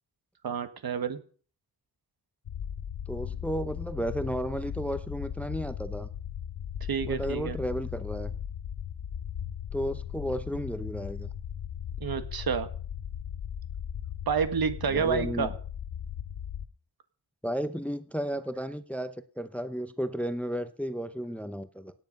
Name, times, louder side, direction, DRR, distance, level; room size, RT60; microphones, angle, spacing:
voice 1, 0.4-1.2 6.9-7.6 12.0-12.7 14.3-15.5, right 6 dB, 65° right, 1.6 m, -29 dB
sound 1, 2.5-16.7, left 9 dB, 75° left, 1.0 m, -37 dB
voice 2, 3.1-6.1 7.0-8.4 9.7-11.3 14.9-15.5 17.4-21.9, equal, 5° left, 0.6 m, -33 dB
17.0 x 9.4 x 5.3 m
wide cardioid pair, 135°, 39 cm